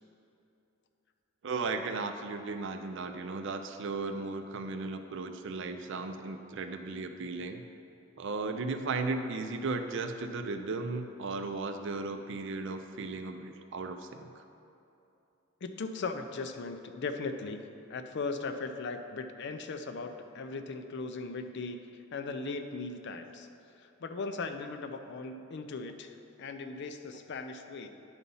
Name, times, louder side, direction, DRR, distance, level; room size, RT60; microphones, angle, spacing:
voice 1, 1.4-7.6 8.2-14.3, right 3 dB, 60° right, 7 dB, 0.5 m, -36 dB
voice 2, 15.6-23.5 23.7-27.9, left 3 dB, 55° left, 7 dB, 0.5 m, -38 dB
9.7 x 4.1 x 5.5 m, 2.8 s
head